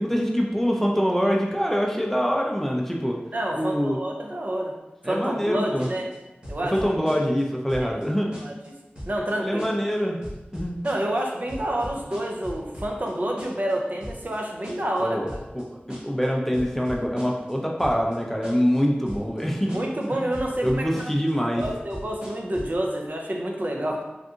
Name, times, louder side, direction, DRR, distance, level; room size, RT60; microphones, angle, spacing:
voice 1, 0.0-3.2 3.5-4.0 5.0-5.9 6.7-8.3 9.4-10.2 10.5-10.8 15.0-15.3 15.5-19.8 20.1-20.2 20.6-21.6, equal, 5° left, 0 dB, 0.4 m, -24 dB
voice 2, 3.3-4.7 5.0-6.1 6.5-6.8 7.8-7.9 8.4-8.7 9.1-9.7 10.8-15.4 19.7-21.1 21.5-24.0, right 1 dB, 50° right, 0 dB, 0.5 m, -28 dB
sound 1, 5.8-6.2 6.4-7.4 7.7-8.0 8.3-8.7 9.0-9.3 9.6-9.9 10.2-11.2 11.5-13.1 13.4-13.7 14.0-14.4 14.6-15.0 15.3-15.6 15.9-16.3 16.5-17.5 17.8-18.2 18.4-18.8 19.1-19.4 19.7-20.0 20.3-21.3 21.6-22.8, equal, 30° right, 1.2 m, -38 dB
3.5 x 2.6 x 2.4 m, 1.0 s
wide cardioid pair, 60°, 4 cm